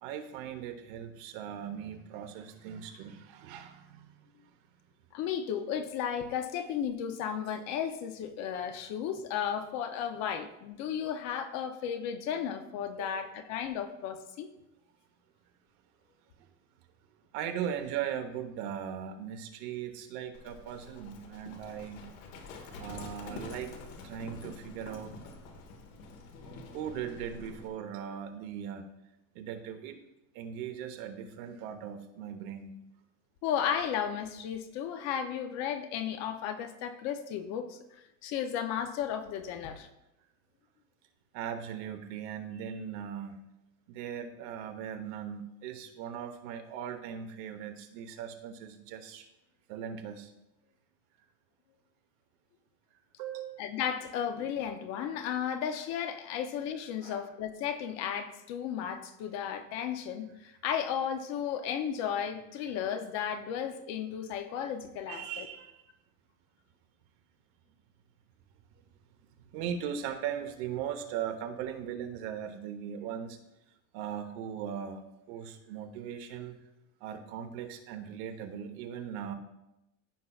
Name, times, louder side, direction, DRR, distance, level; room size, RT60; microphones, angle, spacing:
voice 1, 0.0-4.1 13.0-13.2 17.3-22.0 22.8-23.8 24.0-25.2 26.7-28.9 29.3-30.0 30.3-32.8 41.3-43.4 43.9-49.3 49.7-50.3 53.2-53.6 57.0-57.3 65.1-65.8 69.4-73.4 73.9-75.0 75.3-76.6 77.0-79.3, right 8 dB, 60° right, 6 dB, 1.1 m, -39 dB
voice 2, 5.1-14.5 33.4-37.8 38.2-39.9 53.6-65.5, left 8 dB, 40° left, 8 dB, 0.6 m, -34 dB
Livestock farm animals working animals, 20.3-27.7, left 3 dB, 80° left, 1.6 m, -47 dB
14.5 x 5.5 x 2.4 m, 0.90 s
cardioid pair, 175°, 39 cm